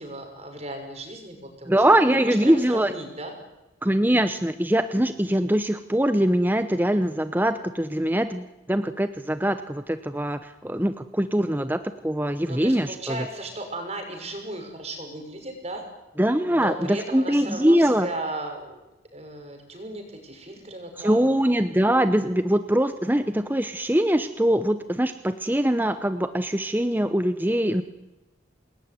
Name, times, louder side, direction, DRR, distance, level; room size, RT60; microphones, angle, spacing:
voice 1, 0.0-1.8 2.1-3.3 12.5-15.8 16.5-18.8 19.1-21.4, right 1 dB, 35° right, 4 dB, 6.0 m, -36 dB
voice 2, 1.7-2.9 3.8-11.8 12.0-13.3 16.2-18.1 21.0-27.8, right 1 dB, 10° right, 10 dB, 0.9 m, -22 dB
27.5 x 20.5 x 9.6 m, 1.0 s
head